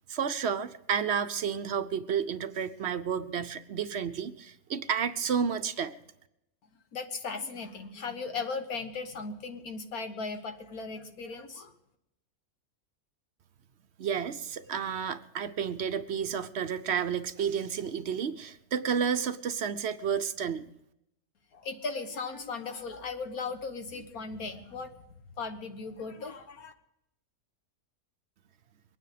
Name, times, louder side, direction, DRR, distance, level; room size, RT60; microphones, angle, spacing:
voice 1, 0.1-5.9 14.0-20.7, right 7 dB, 55° right, 10 dB, 0.8 m, -31 dB
voice 2, 6.9-11.7 21.5-25.0 25.4-26.7, left 4 dB, 70° left, 7 dB, 1.7 m, -37 dB
23.0 x 9.6 x 5.0 m, 0.81 s
omnidirectional pair, 1.6 m